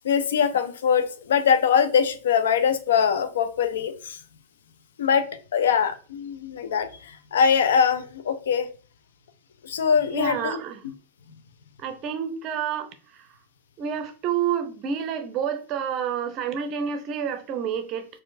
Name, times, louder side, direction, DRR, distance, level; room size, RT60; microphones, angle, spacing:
voice 1, 0.0-4.2 5.0-8.7 9.6-10.6, left 7 dB, 60° left, 0.4 m, -22 dB
voice 2, 10.1-10.8 11.8-13.3 13.8-18.1, right 8 dB, 35° right, 0.5 m, -29 dB
4.3 x 2.5 x 2.5 m
figure-of-eight pair, 90°, 0 cm